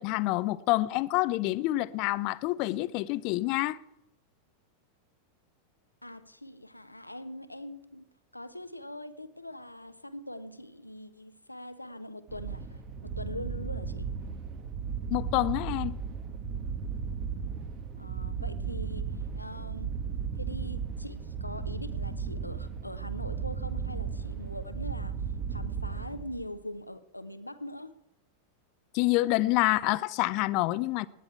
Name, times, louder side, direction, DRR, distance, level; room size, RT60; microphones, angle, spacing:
voice 1, 0.0-3.8 15.1-16.0 28.9-31.1, left 19 dB, 45° left, 0.6 m, -27 dB
voice 2, 6.0-14.1 18.0-20.0 20.3-25.2 25.5-28.0, left 1 dB, 85° left, 0.9 m, -43 dB
sound 1, 12.3-26.5, right 6 dB, 35° right, 1.5 m, -35 dB
18.5 x 9.9 x 4.6 m
figure-of-eight pair, 90°, 0 cm